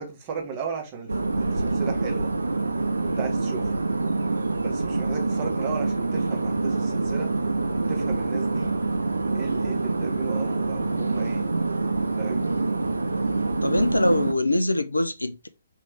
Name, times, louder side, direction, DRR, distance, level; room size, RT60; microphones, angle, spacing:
voice 1, 0.0-2.3 3.0-3.7 4.6-7.3 7.7-8.7 9.3-11.5 12.2-12.4, right 5 dB, 30° right, 1.1 m, -36 dB
sound 1, 1.1-14.3, right 3 dB, 75° right, 0.5 m, -26 dB
voice 2, 13.6-15.5, left 1 dB, 85° left, 0.5 m, -23 dB
3.5 x 3.2 x 3.3 m
figure-of-eight pair, 130°, 0 cm